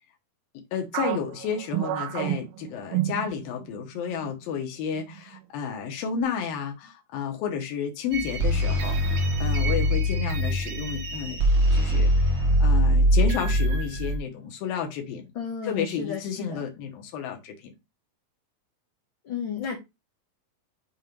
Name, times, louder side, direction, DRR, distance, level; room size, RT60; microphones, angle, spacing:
voice 1, 0.5-11.4 11.7-15.3 15.6-17.7, left 7 dB, 85° left, 2.8 m, -32 dB
sound 1, 0.9-3.8 4.1-4.3 5.0-5.4, right 15 dB, 90° right, 2.4 m, -30 dB
sound 2, 8.1-14.2, equal, 60° right, 1.3 m, -22 dB
voice 2, 15.3-16.6 19.2-19.8, left 7 dB, 60° left, 1.3 m, -33 dB
7.1 x 2.9 x 5.1 m
omnidirectional pair, 4.0 m